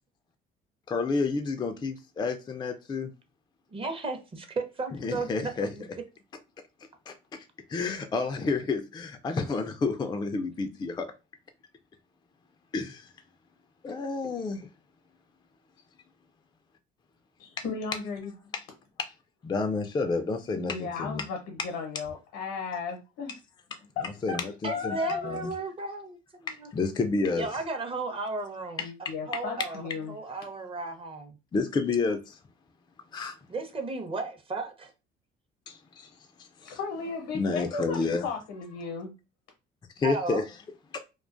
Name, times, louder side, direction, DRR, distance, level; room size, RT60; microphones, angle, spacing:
voice 1, 0.9-3.1 5.0-5.7 7.1-11.1 12.7-13.1 13.8-14.7 17.6-17.7 18.5-18.6 19.0-19.1 19.4-21.2 24.0-25.0 25.2-25.5 26.5-27.5 28.8-28.9 29.3-29.4 31.5-32.4 33.1-33.3 35.7-36.1 36.4-36.8 37.3-38.3 40.0-40.5 40.9-41.0, left 4 dB, 20° left, 0.3 m, -30 dB
voice 2, 3.7-5.9 24.6-26.7 27.3-28.8 29.3-29.8 30.1-31.4 33.5-34.9 40.0-40.4, right 3 dB, 30° right, 0.7 m, -34 dB
voice 3, 17.4-18.5 20.5-23.3 23.8-25.4 28.8-30.1 36.6-39.1, left 5 dB, 85° left, 0.7 m, -35 dB
2.3 x 2.2 x 2.4 m
supercardioid pair, 70°, 19 cm